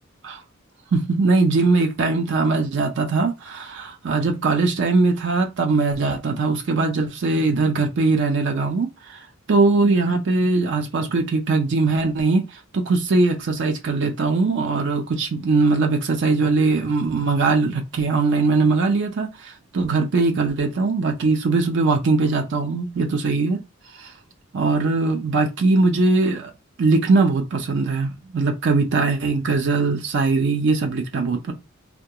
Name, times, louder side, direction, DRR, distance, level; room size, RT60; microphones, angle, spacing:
voice 1, 0.9-9.2 9.5-23.6 24.0-24.1 24.5-26.5 26.8-31.5, right 3 dB, 60° right, 0.5 m, -21 dB
2.2 x 2.2 x 2.7 m
head